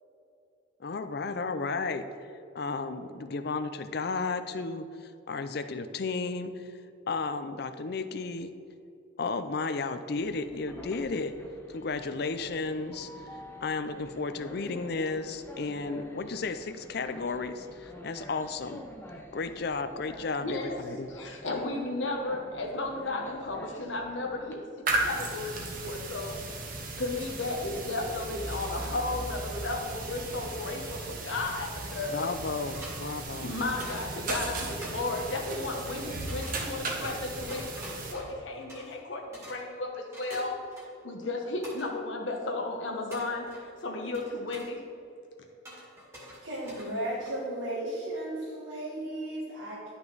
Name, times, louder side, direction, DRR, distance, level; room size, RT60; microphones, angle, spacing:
voice 1, 0.8-2.3 2.5-6.7 7.1-8.5 9.2-11.4 11.7-13.1 13.6-18.8 19.3-21.1 32.1-33.5, left 4 dB, 55° left, 10 dB, 0.5 m, -33 dB
Train, 10.1-24.5, equal, 10° left, 0.8 m, -48 dB
voice 2, 20.4-26.4 27.0-32.4 33.4-40.6 41.0-44.8, left 2 dB, 75° left, 1 dB, 1.1 m, -34 dB
sound 1, 24.9-38.1, right 2 dB, 45° right, 1.2 m, -36 dB
sound 2, 32.7-33.0 33.8-34.1 34.8-35.0 36.3-36.6 37.0-39.1 39.3-39.7 40.1-41.1 41.6-41.9 43.1-43.8 44.1-44.7 45.7-47.5, equal, 15° right, 1.9 m, -45 dB
voice 3, 46.4-49.9, right 1 dB, 75° right, -7 dB, 1.9 m, -35 dB
11.0 x 5.9 x 3.9 m, 2.6 s
head